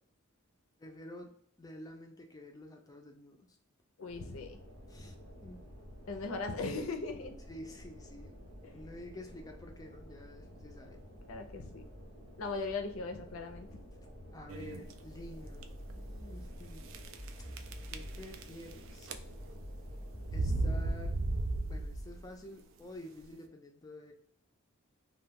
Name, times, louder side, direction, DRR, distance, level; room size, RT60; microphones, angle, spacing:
voice 1, 0.8-3.5 4.9-5.6 7.5-8.4 8.7-11.0 14.3-17.0 17.9-19.1 20.3-21.2 21.7-24.1, left 1 dB, 20° left, 3 dB, 0.4 m, -49 dB
voice 2, 4.0-4.6 6.1-7.3 8.6-8.7 11.3-11.8 12.4-13.7, left 3 dB, 85° left, 6 dB, 0.5 m, -38 dB
sound 1, 4.1-20.9, equal, 85° right, 1.0 m, -52 dB
sound 2, 14.5-14.9 15.5-15.6 15.9-16.0 16.9-17.3 17.6-18.7 19.0-19.6 20.2-22.2, right 2 dB, 65° right, 0.3 m, -34 dB
sound 3, 15.2-18.4 19.1-22.4, equal, 35° right, 0.7 m, -47 dB
2.2 x 2.2 x 3.4 m, 0.64 s
head